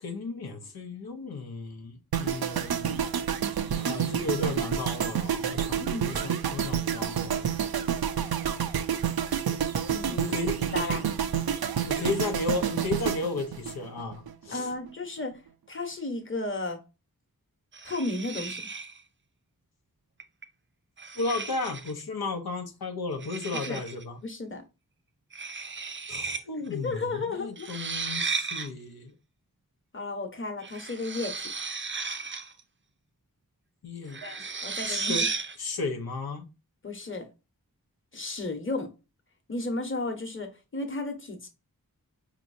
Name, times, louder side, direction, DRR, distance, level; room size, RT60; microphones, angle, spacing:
voice 1, 0.0-3.1 3.8-7.5 10.2-10.8 11.9-14.7 21.1-24.2 26.1-29.1 33.8-34.5 34.8-35.3 35.6-36.4, left 3 dB, 90° left, 0.7 m, -34 dB
sound 1, 2.1-14.3 14.6-14.9, right 8 dB, 90° right, 0.5 m, -29 dB
voice 2, 5.8-6.2 9.9-10.4 10.7-11.1 14.5-15.4 15.7-16.8 17.8-18.6 23.5-23.8 24.2-24.6 26.7-27.7 29.9-31.5 34.2-35.1 36.8-37.3 38.1-38.9 39.5-41.5, left 2 dB, 35° left, 1.0 m, -33 dB
sound 2, 17.7-19.0 20.2-20.4 21.0-22.0 23.2-24.0 25.3-26.4 26.7-26.8 27.6-28.7 30.6-32.6 34.1-35.6, right 4 dB, 35° right, 0.5 m, -34 dB
4.9 x 2.9 x 2.6 m
wide cardioid pair, 65°, 36 cm